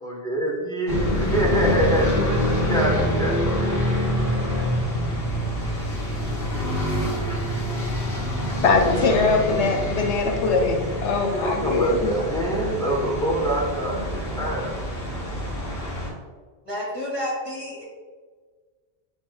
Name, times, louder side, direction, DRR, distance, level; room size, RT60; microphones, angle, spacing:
voice 1, 0.0-3.8 11.4-14.7, right 1 dB, 5° left, -4 dB, 0.9 m, -26 dB
sound 1, 0.9-16.1, equal, 60° left, 1.3 m, -26 dB
voice 2, 8.6-12.1, left 3 dB, 75° left, 3 dB, 0.9 m, -21 dB
voice 3, 16.6-17.8, left 1 dB, 30° right, -6 dB, 1.5 m, -30 dB
7.0 x 3.4 x 2.3 m, 1.5 s
omnidirectional pair, 1.2 m